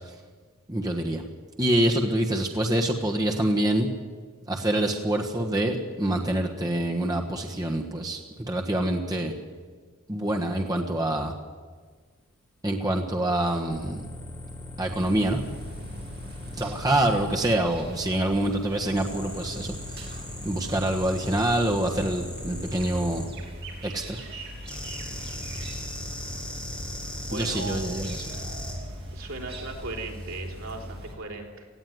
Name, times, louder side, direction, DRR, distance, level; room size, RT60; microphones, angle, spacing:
voice 1, 0.7-1.2 1.6-3.9 4.5-8.2 8.5-9.3 10.1-11.3 12.6-14.1 14.8-15.4 16.6-20.2 20.4-23.3 23.8-24.2 27.3-28.2, right 1 dB, 15° right, 1 dB, 1.4 m, -26 dB
sound 1, 13.7-17.4 19.0-23.3 24.7-28.8 30.0-30.2, left 1 dB, 5° left, 3.8 m, -39 dB
sound 2, 14.8-31.1, equal, 50° right, 3.7 m, -40 dB
voice 2, 27.3-27.9 29.1-31.7, right 2 dB, 75° right, 1 dB, 4.0 m, -37 dB
18.5 x 15.5 x 9.6 m, 1.5 s
head